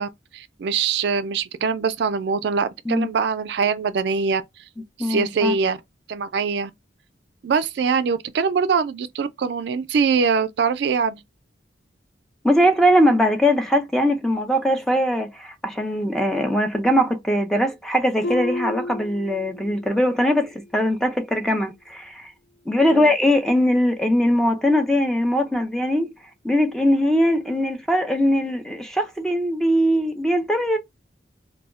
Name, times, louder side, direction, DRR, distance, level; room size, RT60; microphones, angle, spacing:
voice 1, 0.0-4.4 5.0-5.8 6.1-6.7 7.4-11.2 22.9-23.1, right 5 dB, 65° right, 0.3 m, -23 dB
voice 2, 5.0-5.5 12.4-22.3 22.7-26.1 26.4-30.8, equal, 5° left, 0.4 m, -21 dB
Harp, 18.2-20.0 20.3-20.8 21.3-21.4, left 2 dB, 90° left, 0.5 m, -32 dB
2.2 x 2.0 x 3.5 m
head